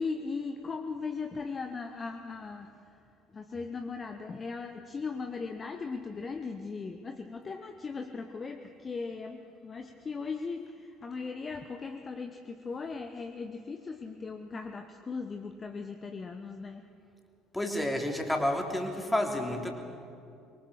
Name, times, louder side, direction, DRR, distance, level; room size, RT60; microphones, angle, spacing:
voice 1, 0.0-3.0 3.3-16.8, left 4 dB, 30° left, 7 dB, 1.1 m, -38 dB
voice 2, 17.5-19.7, left 1 dB, 10° left, 3 dB, 3.5 m, -30 dB
25.0 x 23.0 x 6.6 m, 2.5 s
figure-of-eight pair, 60°, 0 cm